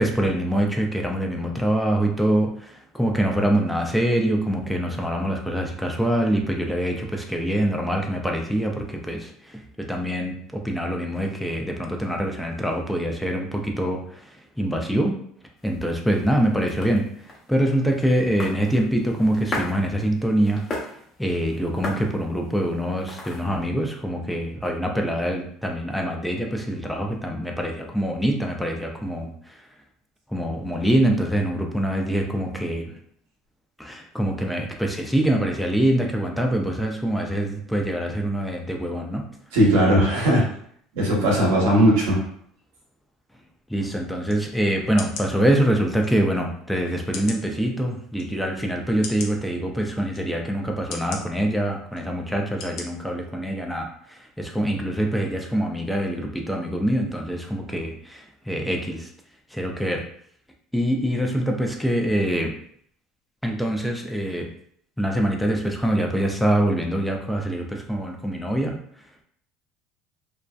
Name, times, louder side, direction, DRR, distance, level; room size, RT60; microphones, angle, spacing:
voice 1, 0.0-15.1 15.6-17.0 17.5-20.6 21.2-29.6 30.3-32.9 33.8-39.3 43.7-59.1 59.5-60.0 60.7-62.5 63.4-64.5 65.0-68.8, right 1 dB, 5° left, 1 dB, 0.4 m, -24 dB
sound 1, 15.6-23.7, left 2 dB, 35° left, 0.8 m, -37 dB
voice 2, 39.5-40.5 40.9-42.2, equal, 85° right, -3 dB, 1.0 m, -18 dB
sound 2, 44.3-44.4 45.0-45.3 46.0-46.1 47.1-47.4 48.1-48.2 49.0-49.3 50.1-50.2 50.9-51.2 51.9-52.1 52.6-52.8 53.3-53.4, left 5 dB, 65° left, 0.5 m, -35 dB
2.5 x 2.1 x 2.3 m, 0.64 s
supercardioid pair, 100°, 0 cm